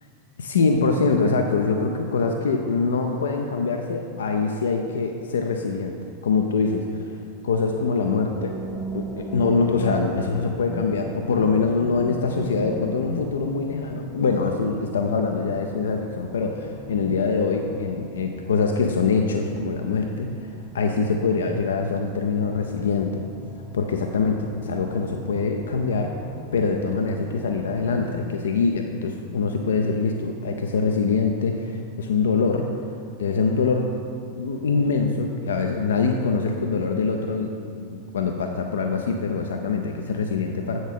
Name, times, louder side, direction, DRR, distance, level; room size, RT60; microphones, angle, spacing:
voice 1, 0.4-6.0 6.2-7.0 7.4-8.5 8.9-20.3 20.7-23.2 23.7-26.1 26.5-32.6 33.2-33.8 34.3-40.8, left 4 dB, 65° left, 3 dB, 0.4 m, -24 dB
sound 1, 8.3-28.2, equal, 10° right, 0.6 m, -39 dB
8.0 x 6.3 x 3.5 m, 2.4 s
figure-of-eight pair, 90°, 0 cm